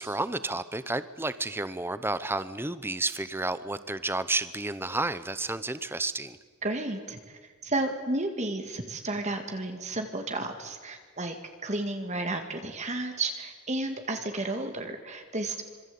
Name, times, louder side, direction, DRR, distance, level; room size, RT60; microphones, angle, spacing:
voice 1, 0.0-6.4, right 2 dB, 10° right, 14 dB, 0.9 m, -31 dB
voice 2, 6.6-11.4 11.6-15.6, right 2 dB, 30° right, 5 dB, 2.0 m, -32 dB
26.0 x 24.0 x 8.6 m, 1.5 s
head